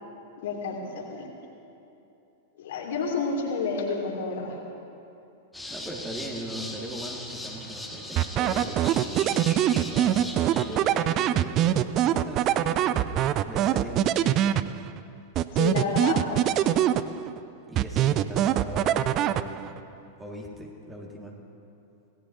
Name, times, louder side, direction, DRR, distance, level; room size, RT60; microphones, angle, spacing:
voice 1, 0.4-1.3 2.6-4.6 15.5-16.5, left 4 dB, 55° left, -1 dB, 2.7 m, -30 dB
sound 1, 5.5-10.8, left 2 dB, 5° left, 1.8 m, -39 dB
voice 2, 5.7-9.4 9.8-14.4 17.7-19.7 20.2-21.4, right 1 dB, 10° right, -1 dB, 2.1 m, -39 dB
sound 2, 8.2-15.0 15.3-17.4 17.8-19.8, right 11 dB, 35° right, 0.4 m, -24 dB
26.0 x 18.0 x 2.8 m, 2.8 s
figure-of-eight pair, 95°, 0 cm